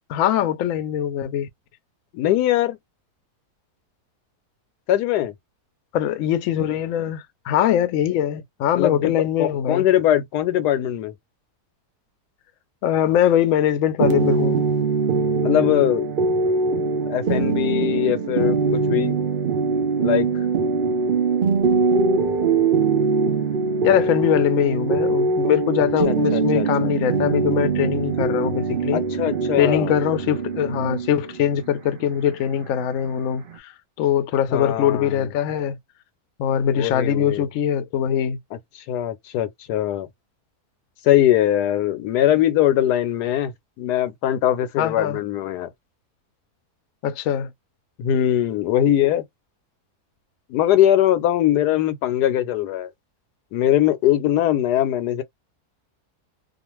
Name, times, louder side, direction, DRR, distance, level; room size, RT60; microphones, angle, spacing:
voice 1, 0.1-1.5 5.9-9.9 12.8-14.6 23.8-29.0 29.6-33.7 34.0-35.8 36.4-38.4 44.8-45.2 47.0-47.5, left 10 dB, 70° left, 0.8 m, -22 dB
voice 2, 2.1-2.8 4.9-5.3 8.7-9.1 9.4-11.1 15.4-16.1 17.1-19.2 20.0-20.4 26.0-26.9 28.9-29.9 34.5-35.2 36.7-37.5 38.9-40.1 41.0-43.5 43.8-45.7 48.0-49.2 50.5-52.9 53.5-55.2, left 12 dB, 90° left, 1.1 m, -21 dB
sound 1, 14.0-33.6, right 4 dB, 80° right, 0.4 m, -22 dB
2.4 x 2.4 x 3.0 m
omnidirectional pair, 1.7 m